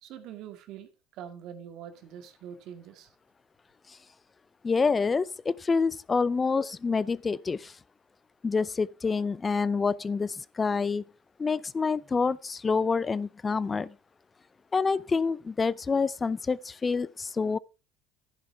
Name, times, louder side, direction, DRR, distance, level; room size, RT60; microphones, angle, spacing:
voice 1, 0.0-3.1 6.2-6.3, right 9 dB, 65° right, 2.1 m, -44 dB
voice 2, 4.6-7.7 8.4-11.0 11.4-13.9 14.7-17.6, left 4 dB, 25° left, 0.5 m, -27 dB
11.5 x 10.5 x 3.4 m
supercardioid pair, 105°, 0 cm